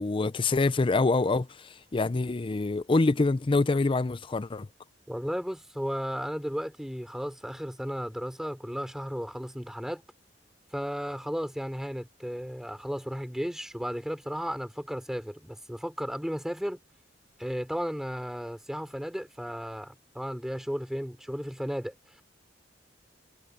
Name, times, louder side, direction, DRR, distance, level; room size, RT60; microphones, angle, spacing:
voice 1, 0.0-4.7, left 3 dB, 30° left, 0.5 m, -26 dB
voice 2, 5.1-10.0 10.7-16.8 17.4-21.9, equal, 5° right, 4.0 m, -34 dB
head